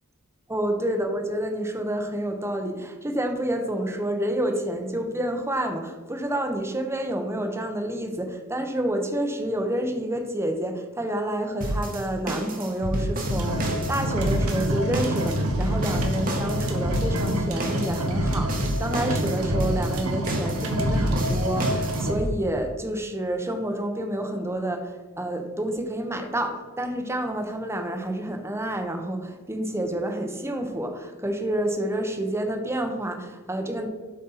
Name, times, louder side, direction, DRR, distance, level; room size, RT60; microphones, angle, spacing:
voice 1, 0.5-33.9, right 1 dB, 10° right, 4 dB, 0.9 m, -29 dB
sound 1, 11.6-22.3, right 1 dB, 40° right, 1.3 m, -29 dB
sound 2, 13.4-22.1, equal, 85° right, 1.3 m, -27 dB
7.7 x 5.5 x 4.1 m, 1.3 s
head